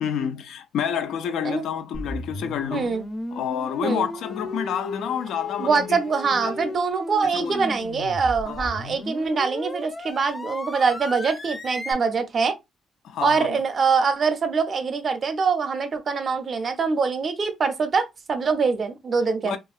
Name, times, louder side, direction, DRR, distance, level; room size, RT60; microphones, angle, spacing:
voice 1, 0.0-2.9 3.3-6.0 6.4-6.7 7.2-7.7 8.5-8.7 13.0-13.6 19.4-19.6, left 8 dB, 80° left, 0.4 m, -29 dB
sound 1, 1.9-11.9, left 1 dB, 15° left, 0.5 m, -35 dB
voice 2, 2.7-3.0 3.8-4.1 5.6-12.5 13.2-19.6, right 5 dB, 45° right, 0.6 m, -24 dB
2.7 x 2.4 x 2.4 m
cardioid pair, 90°, 0 cm